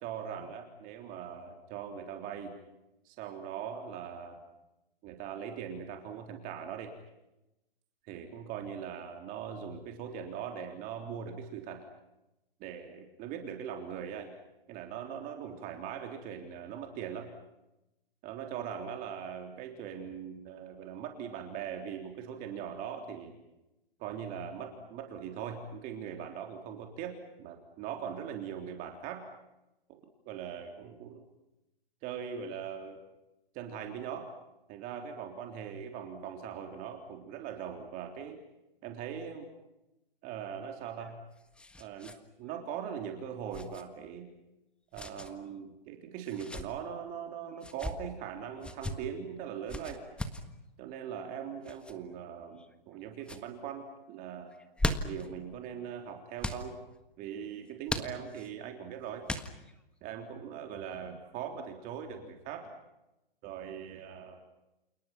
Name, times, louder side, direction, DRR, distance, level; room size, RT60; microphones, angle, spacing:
voice 1, 0.0-2.6 3.1-4.4 5.0-6.9 8.1-11.9 12.6-14.3 14.7-17.3 18.2-23.4 24.0-29.3 30.3-31.2 32.0-33.0 33.5-34.3 34.7-38.4 38.8-39.5 40.2-41.2 41.8-42.1 42.4-44.3 44.9-50.0 50.8-54.5 55.0-56.7 57.2-59.2 60.0-62.7 63.4-64.4, right 8 dB, 30° right, 4 dB, 3.6 m, -41 dB
sound 1, 40.8-42.2 42.5-42.6 43.5-43.8 44.9-45.3 46.2-46.7 47.6-48.0 48.6-49.0 49.7-50.5 51.6-51.9 52.6-53.0 53.2-53.4 54.5-55.3 56.4-56.7 57.9-58.5 59.3-59.8, left 1 dB, 5° left, 1.6 m, -37 dB
29.0 x 29.0 x 6.0 m, 0.93 s
hypercardioid pair, 140°, 30 cm